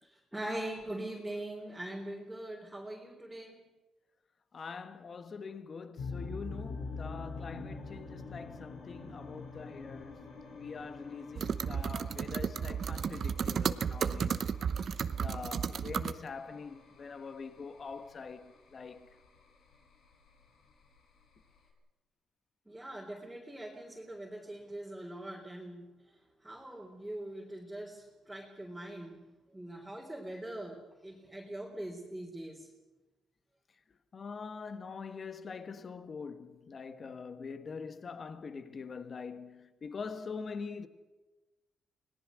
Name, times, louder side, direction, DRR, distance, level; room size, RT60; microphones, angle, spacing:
voice 1, 0.0-3.6 15.5-15.8 22.7-29.2 29.5-32.7, right 1 dB, 5° right, 3.6 m, -42 dB
voice 2, 4.5-10.2 10.5-14.6 15.2-19.1 34.1-40.9, left 5 dB, 40° left, 1.3 m, -44 dB
sound 1, 6.0-21.7, left 3 dB, 70° left, 4.9 m, -47 dB
sound 2, 11.4-16.2, right 7 dB, 55° right, 0.8 m, -33 dB
25.5 x 18.5 x 6.4 m
cardioid pair, 90°, 0 cm